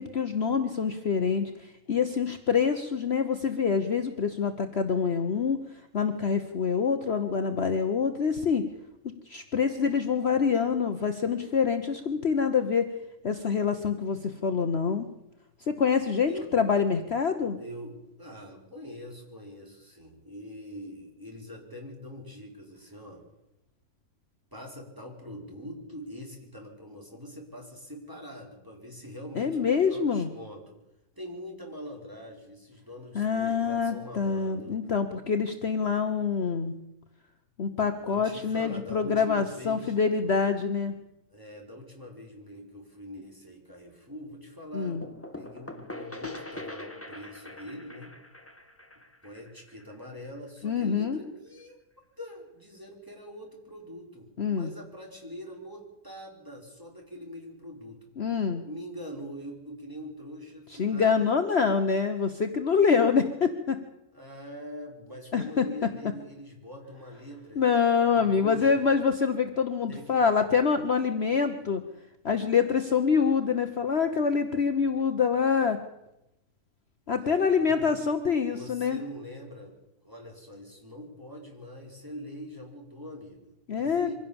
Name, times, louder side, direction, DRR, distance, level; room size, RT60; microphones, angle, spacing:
voice 1, 0.0-5.6 5.9-8.6 9.3-12.9 13.2-15.1 15.7-17.6 29.3-30.3 33.1-36.7 37.6-40.9 44.7-45.0 50.6-51.2 54.4-54.7 58.2-58.6 60.8-63.8 65.3-65.6 67.6-71.8 72.2-75.8 77.1-79.0 83.7-84.1, left 6 dB, 45° left, 6 dB, 1.3 m, -26 dB
voice 2, 17.6-23.2 24.5-30.8 31.2-34.8 38.0-40.0 41.3-45.1 45.3-48.2 49.2-51.8 52.2-58.0 58.6-61.2 64.1-67.7 68.1-69.1 69.9-70.2 77.1-77.9 78.5-79.7 80.0-84.1, equal, 15° right, 0 dB, 4.6 m, -43 dB
sound 1, 45.0-50.6, left 2 dB, 10° left, 1.6 m, -43 dB
24.0 x 16.5 x 7.1 m, 0.90 s
omnidirectional pair, 1.6 m